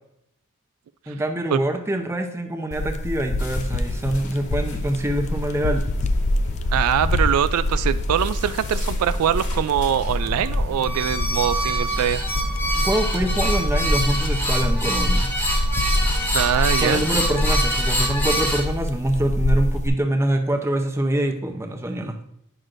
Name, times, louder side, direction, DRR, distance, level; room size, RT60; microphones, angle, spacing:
voice 1, 1.1-5.9 12.8-15.3 16.8-22.4, right 1 dB, 10° right, 4 dB, 0.6 m, -25 dB
sound 1, 2.7-19.9, left 1 dB, 30° left, 0.4 m, -25 dB
sound 2, 3.4-10.2, left 2 dB, 75° left, 1.6 m, -40 dB
voice 2, 6.7-12.2 16.3-17.0, right 9 dB, 80° right, 13 dB, 0.3 m, -23 dB
sound 3, 10.2-18.6, equal, 10° left, 1.1 m, -25 dB
9.0 x 6.2 x 2.5 m, 0.79 s
head